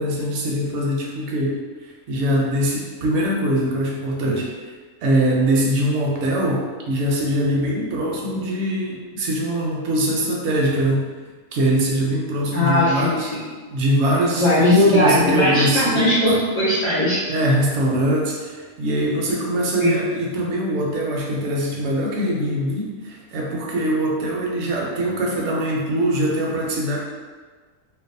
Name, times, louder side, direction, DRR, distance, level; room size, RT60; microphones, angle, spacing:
voice 1, 0.0-1.5 2.1-4.5 5.0-11.0 11.5-13.3 13.7-16.1 17.3-27.0, right 1 dB, 65° right, -2 dB, 0.7 m, -22 dB
voice 2, 12.5-13.4 14.4-17.2 19.8-20.0, left 1 dB, 80° left, -10 dB, 0.3 m, -18 dB
2.5 x 2.1 x 2.6 m, 1.4 s
omnidirectional pair, 1.5 m